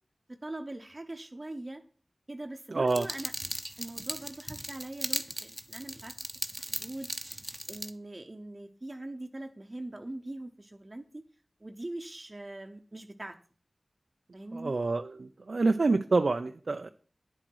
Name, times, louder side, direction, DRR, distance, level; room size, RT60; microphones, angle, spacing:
voice 1, 0.3-1.8 2.3-3.3 3.8-6.1 6.6-7.1 7.7-11.2 11.6-13.4 14.3-14.7, right 1 dB, 40° right, 5 dB, 0.9 m, -42 dB
voice 2, 2.7-3.1 14.5-16.9, right 3 dB, 75° right, 7 dB, 0.5 m, -27 dB
sound 1, 2.9-7.9, right 1 dB, 10° right, 1.0 m, -38 dB
10.0 x 7.9 x 4.7 m, 0.43 s
cardioid pair, 40°, 0 cm